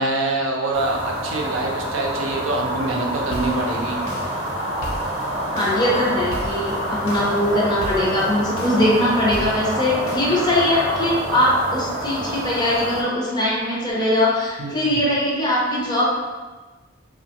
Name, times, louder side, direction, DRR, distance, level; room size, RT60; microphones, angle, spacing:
voice 1, 0.0-4.0 14.6-14.8, right 2 dB, 85° right, 0 dB, 0.5 m, -24 dB
sound 1, 0.7-13.0, equal, 30° right, 0.6 m, -27 dB
sound 2, 3.1-10.2, equal, 80° left, 0.6 m, -37 dB
voice 2, 5.5-16.1, left 1 dB, 20° left, -5 dB, 0.5 m, -21 dB
2.9 x 2.1 x 2.8 m, 1.3 s
head